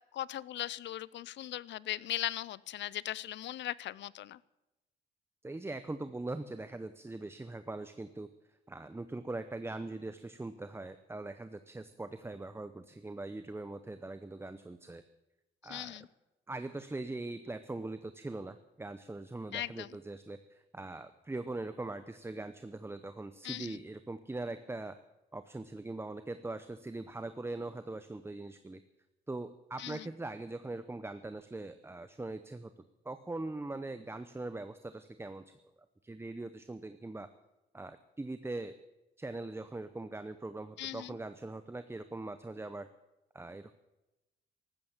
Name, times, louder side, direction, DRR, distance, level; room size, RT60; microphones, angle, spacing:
voice 1, 0.1-4.4 15.6-16.1 19.5-19.9 23.4-23.8 29.8-30.1 40.8-41.2, left 13 dB, 65° left, 22 dB, 0.5 m, -39 dB
voice 2, 5.4-8.3 8.7-15.0 15.6-16.0 16.5-25.0 25.3-28.8 29.3-32.7 33.0-35.6 36.0-37.3 37.7-38.8 39.2-42.9 43.3-43.7, right 2 dB, 10° right, 11 dB, 0.7 m, -41 dB
14.5 x 13.0 x 7.3 m, 0.98 s
cardioid pair, 90°, 20 cm